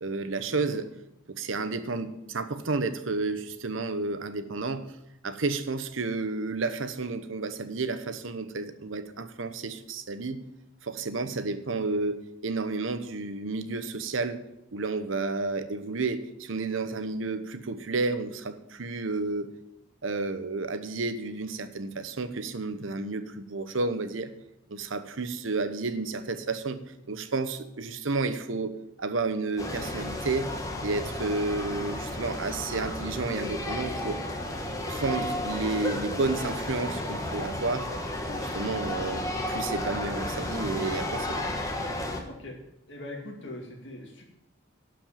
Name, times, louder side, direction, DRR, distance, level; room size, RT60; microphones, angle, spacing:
voice 1, 0.0-0.9 1.3-4.9 5.2-10.4 10.8-14.4 14.7-19.5 20.0-24.3 24.7-26.8 27.1-28.7 29.0-30.5 30.8-34.2 34.9-37.9 38.3-41.4, right 3 dB, 75° right, 11 dB, 0.9 m, -31 dB
sound 1, 29.6-42.2, left 1 dB, 15° left, 1.3 m, -33 dB
voice 2, 42.2-42.6 42.9-44.2, left 1 dB, 65° left, -1 dB, 2.3 m, -41 dB
11.5 x 5.3 x 8.7 m, 0.86 s
head